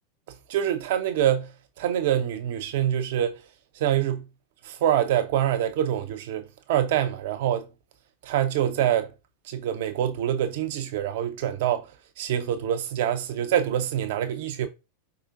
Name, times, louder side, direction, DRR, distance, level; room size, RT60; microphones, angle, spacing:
voice 1, 0.5-1.5 1.8-3.4 3.8-4.3 4.6-7.7 8.2-9.1 9.5-11.9 12.2-14.7, right 10 dB, 50° right, 0.5 m, -25 dB
4.8 x 3.8 x 2.4 m
figure-of-eight pair, 90°, 0 cm